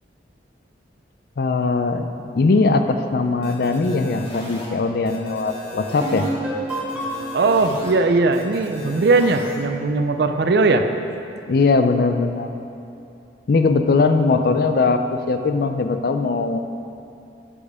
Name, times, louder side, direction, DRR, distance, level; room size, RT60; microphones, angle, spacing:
voice 1, 1.4-2.1 2.3-6.3 11.5-12.5 13.5-16.6, left 3 dB, 55° left, 7 dB, 0.4 m, -20 dB
sound 1, 3.4-4.7 5.1-6.3 6.7-7.9 8.3-9.6, equal, 30° left, 1.3 m, -37 dB
sound 2, 6.0-9.6, right 1 dB, 10° right, 1.3 m, -30 dB
voice 2, 7.3-10.9, right 3 dB, 60° right, 7 dB, 0.4 m, -19 dB
8.6 x 5.1 x 4.8 m, 2.7 s
head